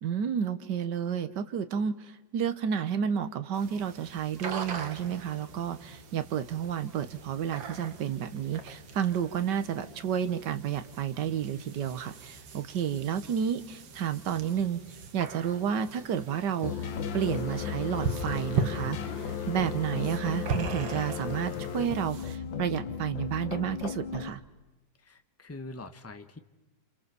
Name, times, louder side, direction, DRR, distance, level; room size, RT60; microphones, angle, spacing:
voice 1, 0.0-14.8 15.1-16.9 17.1-24.4, right 8 dB, 65° right, 11 dB, 1.7 m, -31 dB
sound 1, 3.5-22.4, right 5 dB, 85° right, 2.2 m, -40 dB
sound 2, 3.8-20.8, left 1 dB, 15° right, 5.4 m, -57 dB
sound 3, 16.6-24.3, left 7 dB, 80° left, 1.8 m, -35 dB
voice 2, 25.0-26.4, left 2 dB, 10° left, 8 dB, 0.9 m, -44 dB
28.5 x 27.0 x 6.9 m, 1.1 s
omnidirectional pair, 2.0 m